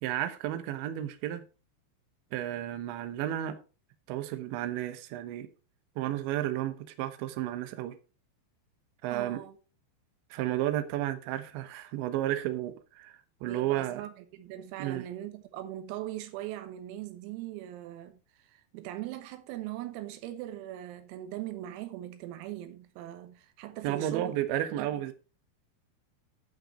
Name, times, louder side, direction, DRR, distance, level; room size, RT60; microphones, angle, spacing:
voice 1, 0.0-1.4 2.3-3.6 4.1-5.5 6.0-8.0 9.0-9.4 10.3-13.1 13.4-14.0 14.8-15.1 23.8-25.1, right 13 dB, 75° right, 3.1 m, -32 dB
voice 2, 9.1-9.6 13.4-24.4 24.7-25.1, right 13 dB, 90° right, 3.9 m, -40 dB
11.5 x 6.8 x 4.1 m
omnidirectional pair, 5.9 m